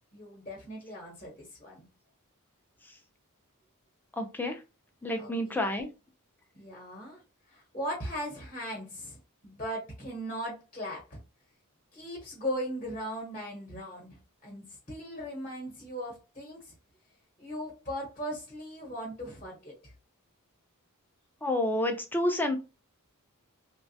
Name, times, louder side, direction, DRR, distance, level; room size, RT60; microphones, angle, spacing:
voice 1, 0.1-1.8 5.2-5.6 6.5-7.2 7.5-11.2 11.9-16.7 17.4-19.9, equal, 30° left, 0.9 m, -38 dB
voice 2, 4.2-4.6 5.0-5.9 21.4-22.6, left 1 dB, 10° left, 0.4 m, -29 dB
3.0 x 2.2 x 2.7 m
head